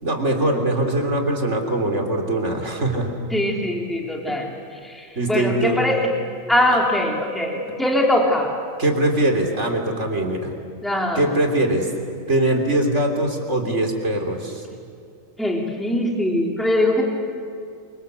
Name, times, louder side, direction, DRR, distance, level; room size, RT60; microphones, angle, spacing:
voice 1, 0.0-3.1 5.2-5.8 8.8-10.5 11.2-11.9 12.3-14.7, right 1 dB, 60° right, 3 dB, 3.8 m, -22 dB
voice 2, 3.3-4.5 4.8-6.0 6.5-8.5 10.8-11.3 15.4-17.0, left 1 dB, ahead, 0 dB, 3.5 m, -22 dB
28.0 x 25.5 x 8.2 m, 2.5 s
omnidirectional pair, 1.4 m